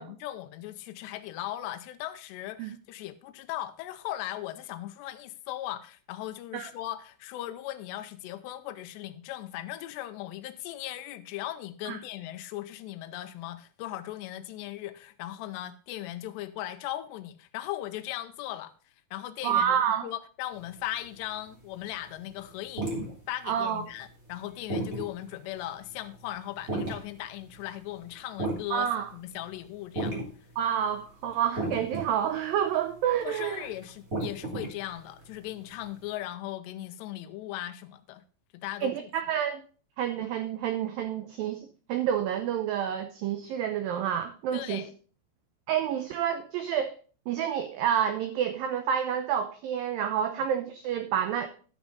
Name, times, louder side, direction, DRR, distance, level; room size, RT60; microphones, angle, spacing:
voice 1, 0.0-18.7 19.1-19.7 20.0-23.0 23.3-30.2 33.2-38.2 38.5-39.1 44.5-44.9, left 14 dB, 85° left, 2.7 m, -38 dB
voice 2, 19.4-20.1 23.5-23.8 28.7-29.1 30.6-33.7 38.8-39.6 40.0-44.8 45.7-47.0 47.3-51.5, right 9 dB, 85° right, 2.0 m, -29 dB
sound 1, 20.6-21.6 22.0-29.6 29.9-30.5 30.8-36.0, right 2 dB, 25° right, 2.1 m, -35 dB
12.0 x 7.1 x 3.9 m
omnidirectional pair, 5.0 m